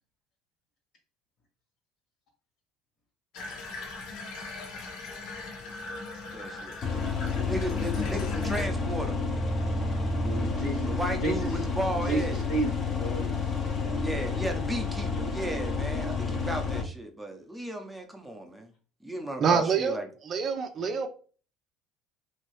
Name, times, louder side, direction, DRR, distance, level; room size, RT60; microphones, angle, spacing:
Water tap faucet / Bathtub (filling or washing), 3.3-8.7, left 3 dB, 70° left, 0.9 m, -39 dB
voice 1, 6.3-6.7 7.3-9.2 10.9-12.4 14.0-18.7 19.0-20.1, right 1 dB, 5° right, 0.7 m, -34 dB
sound 1, 6.8-16.8, left 4 dB, 30° left, 0.7 m, -30 dB
voice 2, 10.2-10.9 11.2-13.4, right 2 dB, 55° left, 1.4 m, -32 dB
voice 3, 19.4-20.0 20.2-21.1, right 6 dB, 40° right, 0.5 m, -25 dB
2.9 x 2.7 x 3.0 m
supercardioid pair, 105°, 0 cm